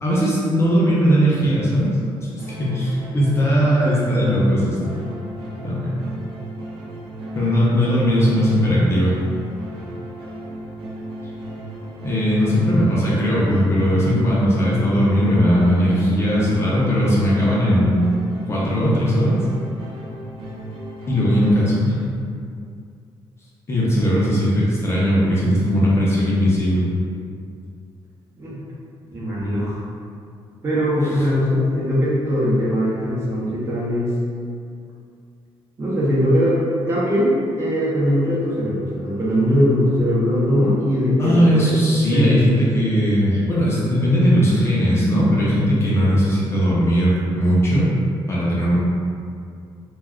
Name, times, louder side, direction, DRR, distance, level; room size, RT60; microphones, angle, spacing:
voice 1, 0.0-1.9 2.2-2.3 2.6-4.8 5.6-5.9 7.3-9.1 12.0-18.0 18.5-19.4 21.1-21.9 23.7-26.9 31.0-31.3 41.2-47.9 48.3-48.8, equal, 25° left, -7 dB, 0.5 m, -18 dB
sound 1, 2.4-21.6, right 1 dB, 70° right, 0.4 m, -35 dB
voice 2, 29.1-29.8 30.6-34.1 35.8-36.6 36.9-41.6 42.1-42.3, equal, 30° right, -8 dB, 0.7 m, -20 dB
2.3 x 2.2 x 3.4 m, 2.3 s
cardioid pair, 165°, 10 cm